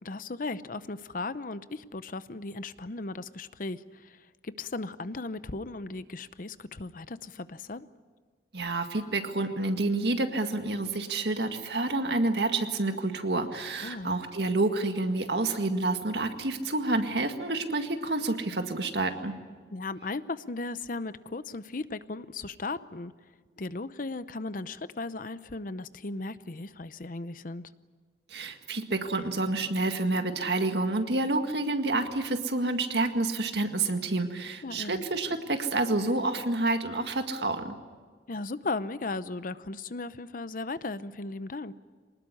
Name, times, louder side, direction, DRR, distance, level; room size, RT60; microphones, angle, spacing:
voice 1, 0.0-7.9 13.8-14.1 19.7-23.1 23.6-27.7 34.6-35.0 38.3-41.7, left 3 dB, 50° left, 14 dB, 0.7 m, -36 dB
voice 2, 8.5-19.3 28.3-37.7, right 2 dB, 70° right, 6 dB, 1.9 m, -28 dB
24.0 x 20.0 x 9.9 m, 1.5 s
head